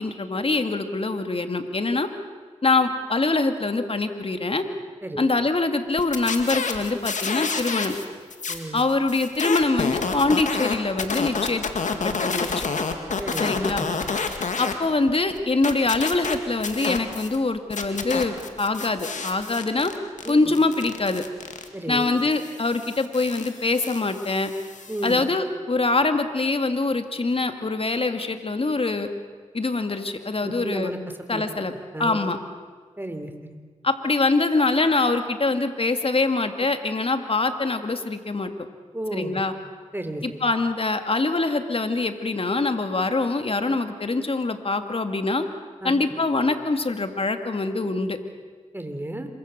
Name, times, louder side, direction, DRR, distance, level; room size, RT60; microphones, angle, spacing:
voice 1, 0.0-2.1 2.6-4.7 5.2-7.9 8.7-11.6 12.0-12.7 13.4-13.9 14.6-19.9 20.3-21.2 21.9-24.5 25.0-29.1 29.5-30.9 31.3-31.7 32.0-32.4 33.8-38.5 39.1-39.5 40.2-45.4 45.8-48.2, left 3 dB, 50° left, 7 dB, 2.4 m, -24 dB
voice 2, 5.0-5.3 8.5-8.8 13.2-13.9 20.2-20.4 21.7-22.2 24.9-25.2 30.4-31.0 31.3-31.4 31.9-32.3 33.0-33.6 38.9-39.4 39.9-40.4 45.8-45.9 48.7-49.3, right 1 dB, 15° right, 7 dB, 3.7 m, -33 dB
sound 1, 6.0-8.0 8.3-14.7 15.1-17.4 17.7-25.2, left 4 dB, 80° left, 2.2 m, -29 dB
27.0 x 23.5 x 6.9 m, 1.5 s
cardioid pair, 45°, 12 cm